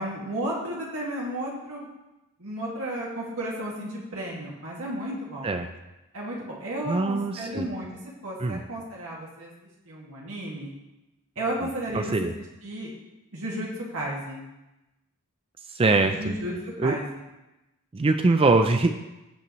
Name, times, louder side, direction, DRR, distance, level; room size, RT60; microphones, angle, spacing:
voice 1, 0.0-1.9 2.4-5.6 6.1-7.9 8.2-9.5 9.9-10.7 11.4-12.3 12.6-12.9 13.3-14.4 16.0-17.1, right 1 dB, 70° right, -4 dB, 2.1 m, -33 dB
voice 2, 6.9-7.7 8.4-8.6 11.9-12.3 15.7-16.4 16.8-17.0 17.9-18.9, right 3 dB, 25° right, 7 dB, 0.4 m, -22 dB
16.5 x 5.7 x 3.1 m, 0.98 s
head